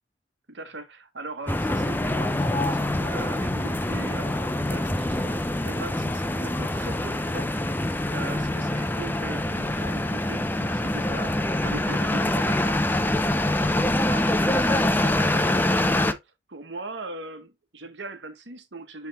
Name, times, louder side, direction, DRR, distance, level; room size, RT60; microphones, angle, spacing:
voice 1, 0.5-7.5 8.1-12.9 14.1-16.2 16.5-19.1, right 3 dB, 75° right, 1.4 m, -40 dB
sound 1, 1.5-16.1, left 1 dB, 10° left, 0.5 m, -25 dB
8.0 x 3.5 x 3.5 m
head